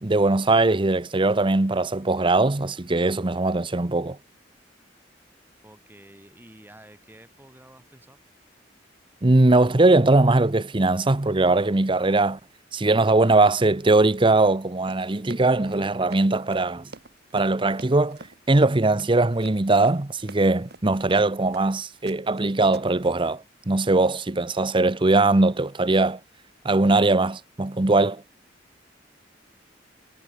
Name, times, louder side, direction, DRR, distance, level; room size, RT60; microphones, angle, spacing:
voice 1, 0.0-4.2 9.2-12.4 12.7-16.9 17.3-18.2 18.5-26.2 26.6-28.2, right 2 dB, 30° right, 0.8 m, -20 dB
voice 2, 5.6-8.2, right 1 dB, 10° right, 7.2 m, -50 dB
Run, 14.9-21.7 22.1-22.4 22.7-23.1, right 3 dB, 60° right, 3.6 m, -46 dB
head